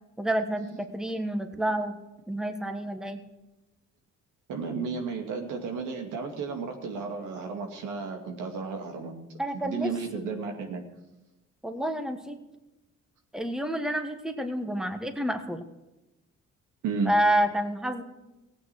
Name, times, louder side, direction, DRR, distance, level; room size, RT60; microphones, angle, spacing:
voice 1, 0.2-2.0 2.3-3.2 9.4-10.2 11.6-12.4 13.3-15.6 17.0-18.0, right 1 dB, ahead, 7 dB, 1.4 m, -29 dB
voice 2, 4.5-9.1 9.6-10.8 16.8-17.1, right 5 dB, 85° right, 3 dB, 2.4 m, -33 dB
16.5 x 8.8 x 6.2 m, 1.0 s
cardioid pair, 90°, 30 cm